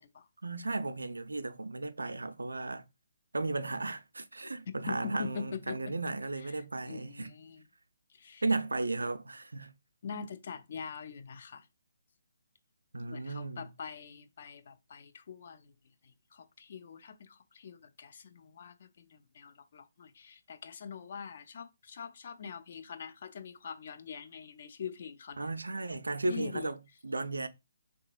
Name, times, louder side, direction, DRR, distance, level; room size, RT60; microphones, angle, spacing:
voice 1, 0.4-2.8 3.3-7.3 8.4-9.7 12.9-13.7 25.4-27.5, right 2 dB, 75° right, 0.3 m, -35 dB
voice 2, 4.7-5.9 6.4-6.5 6.8-7.6 8.1-8.4 10.0-11.7 13.1-15.7 16.0-25.5 26.3-26.7, left 6 dB, 45° left, 0.4 m, -44 dB
3.4 x 2.8 x 2.3 m
figure-of-eight pair, 140°, 0 cm